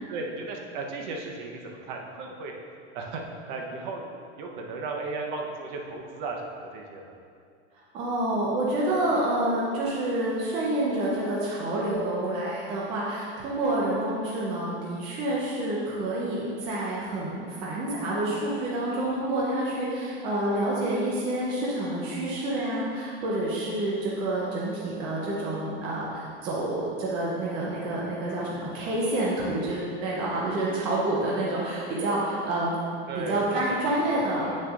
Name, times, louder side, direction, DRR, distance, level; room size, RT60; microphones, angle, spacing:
voice 1, 0.1-2.5 2.9-3.2 3.5-4.1 4.4-6.4 6.7-7.2 33.1-34.0 34.3-34.6, right 3 dB, 45° right, 1 dB, 0.8 m, -35 dB
voice 2, 7.9-32.8 33.2-34.5, right 1 dB, 15° right, -6 dB, 0.4 m, -28 dB
7.9 x 6.3 x 2.3 m, 2.3 s
supercardioid pair, 165°, 35 cm